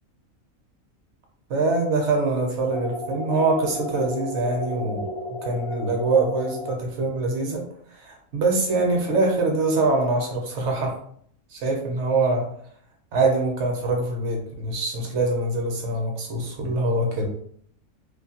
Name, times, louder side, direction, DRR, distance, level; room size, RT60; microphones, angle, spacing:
voice 1, 1.5-5.1 5.4-7.6 7.9-10.9 11.5-12.5 13.1-17.3, right 3 dB, 60° right, 1 dB, 0.9 m, -24 dB
sound 1, 2.7-6.7, left 1 dB, 70° left, 0.9 m, -33 dB
2.5 x 2.2 x 2.7 m, 0.63 s
omnidirectional pair, 1.4 m